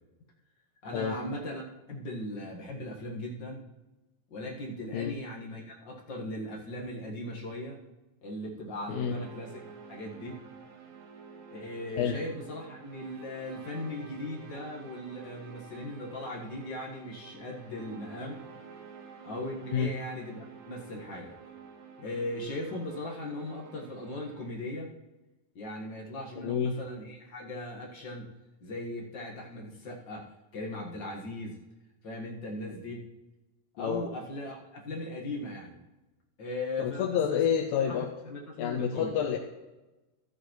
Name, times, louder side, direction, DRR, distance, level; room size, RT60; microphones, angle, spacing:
voice 1, 0.8-3.6 4.3-7.8 8.2-9.6 9.9-10.4 11.5-18.4 19.2-21.3 22.0-24.9 25.5-28.3 28.6-30.3 30.5-31.6 32.0-33.0 33.7-35.8 36.4-37.4 37.9-39.4, left 1 dB, 50° left, -2 dB, 1.4 m, -38 dB
sound 1, 8.9-24.5, right 6 dB, 75° right, 2.8 m, -49 dB
voice 2, 26.4-26.8 33.8-34.1 36.8-38.1 38.6-39.4, left 8 dB, 75° left, 3 dB, 1.9 m, -28 dB
14.0 x 9.0 x 3.1 m, 1.1 s
omnidirectional pair, 4.1 m